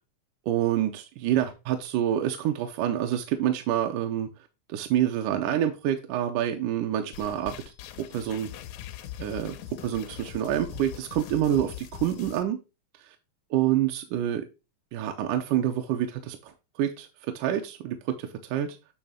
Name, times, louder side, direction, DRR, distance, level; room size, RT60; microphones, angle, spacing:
voice 1, 0.5-4.3 4.7-7.6 8.1-8.5 9.2-12.6 13.0-13.2 13.5-14.5 14.9-16.5 16.8-18.8, right 11 dB, 80° right, 5 dB, 2.1 m, -27 dB
sound 1, 7.1-12.4, left 12 dB, 85° left, 1.6 m, -42 dB
8.8 x 3.1 x 4.9 m, 0.28 s
omnidirectional pair, 4.0 m